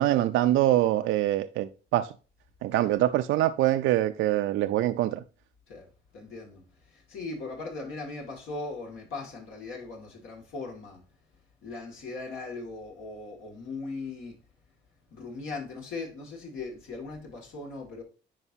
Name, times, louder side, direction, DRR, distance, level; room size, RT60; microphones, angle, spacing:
voice 1, 0.0-2.1 2.6-5.2, right 14 dB, 80° right, 0.4 m, -24 dB
voice 2, 6.1-11.0 11.6-14.4 15.1-18.0, left 3 dB, 85° left, 2.1 m, -39 dB
9.9 x 4.5 x 2.7 m
cardioid pair, 90°, 20 cm